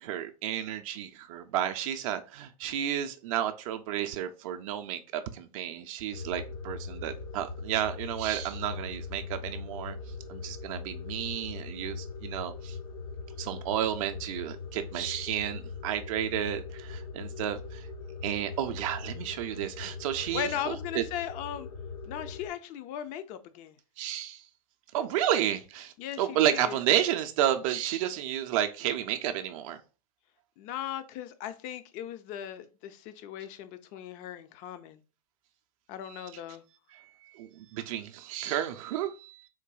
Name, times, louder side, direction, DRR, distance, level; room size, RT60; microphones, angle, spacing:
voice 1, 0.0-10.0 10.3-12.8 13.4-17.9 18.2-21.0 24.0-24.5 24.9-29.8 36.1-36.4 36.9-39.5, right 11 dB, 60° right, 0.4 m, -32 dB
sound 1, 6.1-22.5, left 4 dB, 65° left, 0.8 m, -41 dB
voice 2, 20.3-21.7 22.1-23.7 26.0-26.8 30.6-35.0 35.9-36.6, left 10 dB, 40° left, 0.4 m, -38 dB
3.8 x 2.6 x 2.3 m
hypercardioid pair, 115°, 19 cm